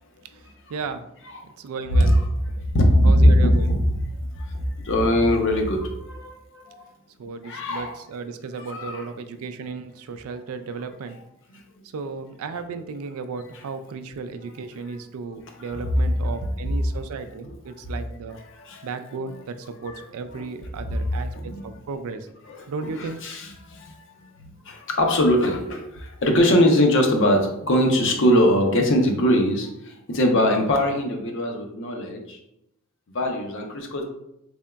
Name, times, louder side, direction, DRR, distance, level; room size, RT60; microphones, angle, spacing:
voice 1, 0.3-1.1 1.4-2.2 3.0-3.8 7.2-11.2 11.8-18.4 18.8-22.3 22.7-23.2, right 4 dB, 75° right, 9 dB, 0.3 m, -35 dB
voice 2, 2.7-3.8 4.3-6.8 7.4-7.9 8.6-9.1 15.3-15.4 15.6-15.9 18.5-18.9 20.3-20.4 21.3-21.6 22.5-23.9 24.7-32.4 33.1-34.0, equal, 60° left, 3 dB, 0.6 m, -21 dB
3.8 x 3.5 x 2.2 m, 0.82 s
head